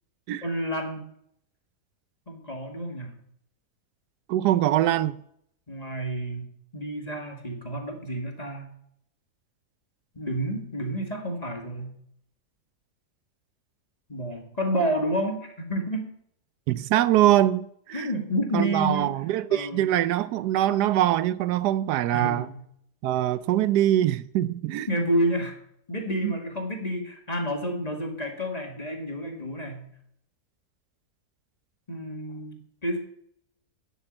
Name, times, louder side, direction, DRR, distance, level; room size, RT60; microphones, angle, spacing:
voice 1, 0.4-1.0 2.3-3.1 5.7-6.5 6.7-8.7 10.1-11.9 14.1-16.1 17.9-19.1 19.5-19.9 22.1-22.6 24.9-25.5 25.9-29.9 31.9-32.6 32.8-33.0, equal, 25° left, 2.1 m, -29 dB
voice 2, 4.3-5.2 16.7-18.1 18.5-22.5 23.0-24.9 26.2-26.4, right 13 dB, 90° right, 1.2 m, -23 dB
10.0 x 8.1 x 7.8 m
omnidirectional pair, 1.7 m